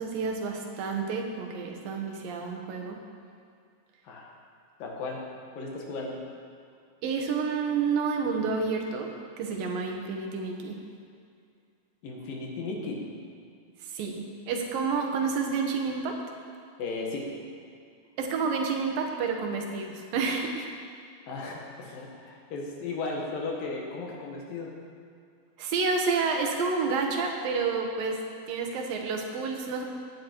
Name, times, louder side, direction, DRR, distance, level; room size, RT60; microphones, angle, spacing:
voice 1, 0.0-3.0 7.0-9.1 9.4-10.8 13.8-16.2 18.2-20.7 25.6-28.2 28.5-29.8, right 4 dB, 85° right, 2 dB, 3.1 m, -29 dB
voice 2, 4.8-5.2 5.5-6.2 12.0-13.0 16.8-17.3 21.3-24.7, left 3 dB, 80° left, -1 dB, 3.4 m, -35 dB
16.5 x 10.5 x 4.7 m, 2.2 s
omnidirectional pair, 3.9 m